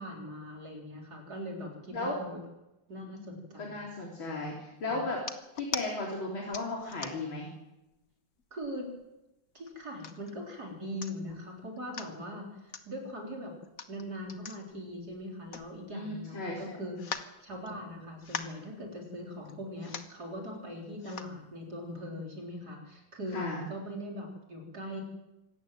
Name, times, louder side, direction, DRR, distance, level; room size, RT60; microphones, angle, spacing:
voice 1, 0.0-2.4 2.9-3.9 4.9-5.0 8.5-8.9 9.5-13.6 13.9-25.0, equal, 50° right, 0 dB, 4.5 m, -41 dB
voice 2, 3.2-5.2 5.6-7.5 15.9-16.8 23.3-23.6, left 2 dB, 85° left, -2 dB, 4.4 m, -35 dB
sound 1, 5.2-5.9 6.5-7.4 7.9-8.0 8.4-9.0 9.7-10.3 10.7-10.8 11.0-11.4 11.8-12.1 12.7-12.9 13.6-16.2 16.5-16.6 17.0-17.9 18.2-18.6 19.4-19.5 19.8-20.2 21.0-21.4 22.0-22.1, left 6 dB, 50° left, 1.6 m, -41 dB
25.0 x 14.0 x 9.3 m, 0.97 s
omnidirectional pair, 2.1 m